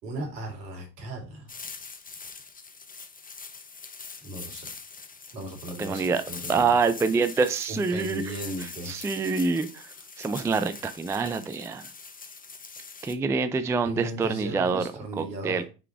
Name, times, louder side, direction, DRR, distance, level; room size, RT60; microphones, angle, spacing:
voice 1, 0.0-1.5 4.2-4.7 5.3-6.7 7.7-8.9 13.8-15.6, right 1 dB, 80° right, 0 dB, 2.9 m, -36 dB
sound 1, 1.5-13.1, left 4 dB, 15° left, 1.1 m, -43 dB
voice 2, 5.8-6.2 6.5-9.8 10.2-11.8 13.0-14.8 15.2-15.6, right 4 dB, 5° right, 11 dB, 0.4 m, -26 dB
6.1 x 3.9 x 4.6 m, 0.31 s
hypercardioid pair, 75°, 50 cm